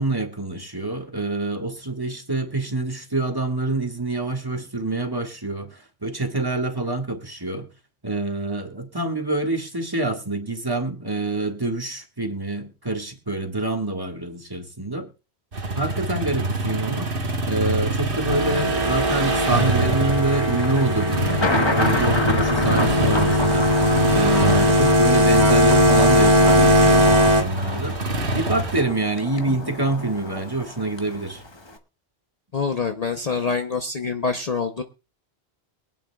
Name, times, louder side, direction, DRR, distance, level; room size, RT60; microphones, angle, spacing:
voice 1, 0.0-7.7 8.0-15.1 15.7-17.1 17.4-23.7 24.1-28.0 28.3-31.4, right 2 dB, 20° right, 3 dB, 1.6 m, -26 dB
sound 1, 15.5-28.8, right 2 dB, 55° right, 1.5 m, -26 dB
sound 2, 18.3-27.4, equal, 40° right, 2.1 m, -19 dB
Thunder, 19.5-31.8, left 2 dB, 25° left, 1.1 m, -30 dB
voice 2, 32.5-34.8, left 5 dB, 40° left, 5 dB, 0.7 m, -25 dB
23.0 x 9.1 x 2.2 m, 0.29 s
omnidirectional pair, 1.1 m